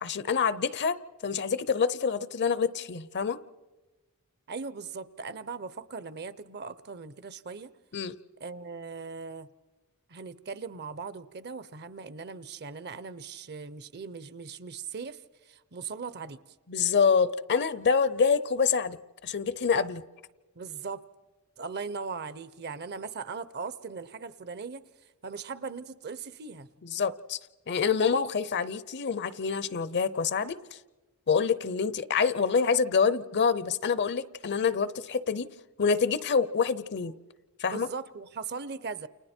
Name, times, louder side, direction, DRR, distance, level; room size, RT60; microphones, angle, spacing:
voice 1, 0.0-1.0 1.2-3.4 7.9-8.1 16.7-20.0 26.8-27.4 27.7-30.8 31.3-35.5 35.8-37.1 37.6-37.9, left 5 dB, 50° left, 17 dB, 0.7 m, -26 dB
voice 2, 4.5-7.7 8.4-9.5 10.1-15.2 15.5-16.4 20.6-21.0 21.6-24.8 25.2-26.7 37.6-39.1, right 5 dB, 50° right, 16 dB, 0.8 m, -39 dB
29.5 x 29.5 x 4.4 m, 1.2 s
head